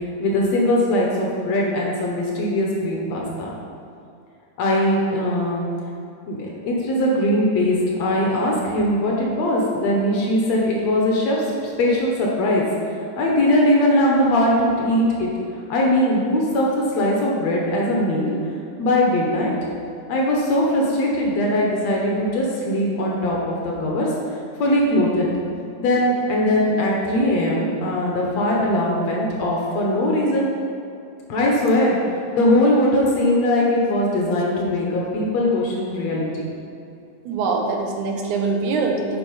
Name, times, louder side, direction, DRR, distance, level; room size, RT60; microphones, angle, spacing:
voice 1, 0.2-3.5 4.6-5.7 6.3-12.6 13.2-15.3 15.7-18.3 18.8-19.5 20.1-24.1 24.6-25.3 25.8-30.5 31.3-32.0 32.3-36.5, left 1 dB, 65° left, -3 dB, 2.1 m, -20 dB
voice 2, 37.3-39.2, right 4 dB, 75° right, 2 dB, 2.3 m, -23 dB
8.0 x 5.4 x 5.5 m, 2.5 s
omnidirectional pair, 3.6 m